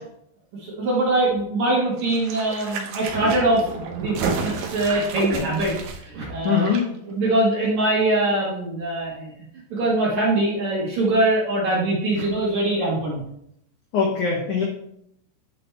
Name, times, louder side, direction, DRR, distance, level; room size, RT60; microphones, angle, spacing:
voice 1, 0.6-6.6 7.1-9.3 9.7-13.2, right 2 dB, 55° right, -5 dB, 2.4 m, -23 dB
sound 1, 2.0-6.8 7.1-7.2, right 6 dB, 80° right, 1.9 m, -31 dB
voice 2, 6.4-6.8 13.9-14.6, left 6 dB, 80° left, -2 dB, 1.7 m, -21 dB
10.0 x 4.1 x 3.4 m, 0.74 s
omnidirectional pair, 5.0 m